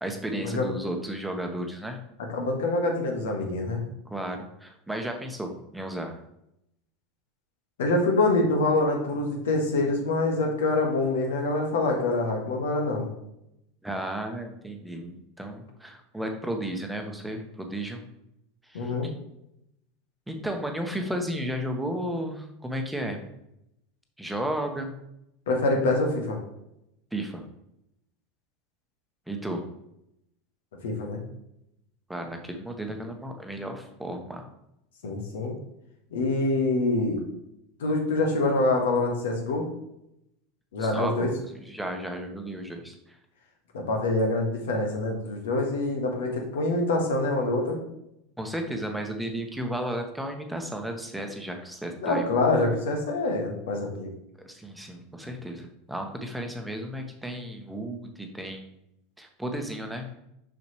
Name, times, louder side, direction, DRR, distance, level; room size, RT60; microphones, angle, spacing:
voice 1, 0.0-2.0 4.1-6.2 13.8-18.0 18.6-19.1 20.3-23.2 24.2-24.9 27.1-27.4 29.3-29.6 32.1-34.4 40.8-43.2 48.4-52.3 54.4-58.7 59.2-60.1, right 1 dB, 5° right, 3 dB, 1.2 m, -33 dB
voice 2, 2.3-3.8 7.8-13.1 18.7-19.1 25.5-26.4 30.8-31.2 35.0-35.5 36.1-37.2 37.8-39.7 40.7-41.3 43.7-47.8 52.0-54.1, left 2 dB, 65° left, 2 dB, 1.6 m, -25 dB
6.8 x 6.3 x 3.1 m, 0.81 s
figure-of-eight pair, 80°, 0 cm